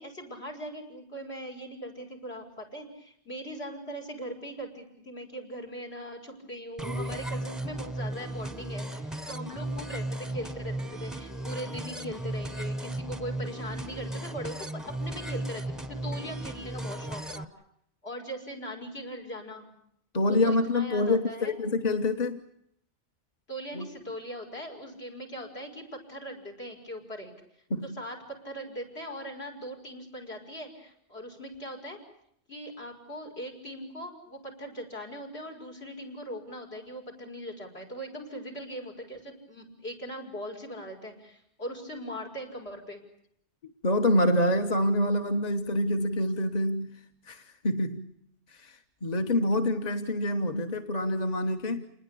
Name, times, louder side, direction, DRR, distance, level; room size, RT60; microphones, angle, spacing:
voice 1, 0.0-17.5 18.0-19.7 20.3-21.5 23.5-27.3 27.8-32.0 32.5-43.0, equal, 70° left, 6.2 m, -40 dB
sound 1, 6.8-17.4, right 1 dB, ahead, 0.9 m, -35 dB
voice 2, 20.1-22.4 23.7-23.9 27.7-28.0 43.8-46.9 47.3-48.1 48.5-51.9, left 1 dB, 40° left, 1.4 m, -26 dB
28.5 x 20.0 x 8.4 m
omnidirectional pair, 1.1 m